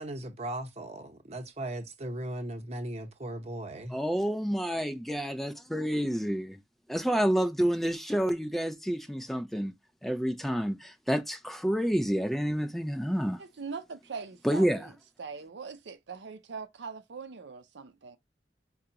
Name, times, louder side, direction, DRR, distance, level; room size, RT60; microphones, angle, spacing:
voice 1, 0.0-3.9, right 1 dB, 40° right, 0.9 m, -37 dB
voice 2, 3.9-6.6 6.9-9.7 10.0-13.4 14.4-14.9, equal, ahead, 0.4 m, -29 dB
voice 3, 13.4-14.9 15.2-18.2, right 5 dB, 85° right, 0.6 m, -41 dB
4.9 x 2.3 x 2.7 m
head